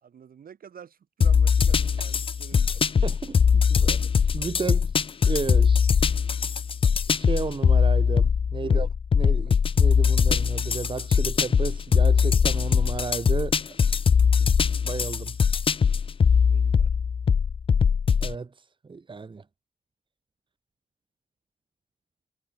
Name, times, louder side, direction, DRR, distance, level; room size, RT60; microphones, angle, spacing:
voice 1, 0.0-2.8 8.6-8.9 9.4-9.5 16.5-16.9, right 8 dB, 70° right, 4.4 m, -48 dB
sound 1, 1.2-18.4, left 6 dB, 35° left, 0.4 m, -21 dB
voice 2, 3.0-4.0 4.3-4.9 5.3-5.8 7.1-8.9 9.2-13.8 14.4-14.5 14.8-15.4 18.2-18.5 18.8-19.4, right 4 dB, 30° right, 2.0 m, -33 dB
wide cardioid pair, 140°, 15 cm